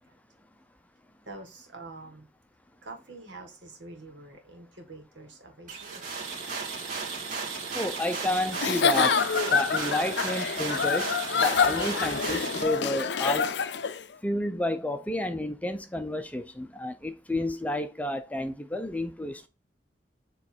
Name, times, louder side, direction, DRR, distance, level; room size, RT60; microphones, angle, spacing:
voice 1, 1.3-2.3 2.8-6.1, right 2 dB, 85° right, 1.8 m, -46 dB
sound 1, 5.7-12.6, right 4 dB, 45° right, 1.9 m, -34 dB
voice 2, 7.7-9.2 9.5-13.5 14.2-19.5, left 1 dB, 10° left, 0.6 m, -31 dB
Giggle / Chuckle chortle, 8.5-14.0, left 6 dB, 70° left, 0.5 m, -26 dB
7.3 x 3.2 x 4.5 m
head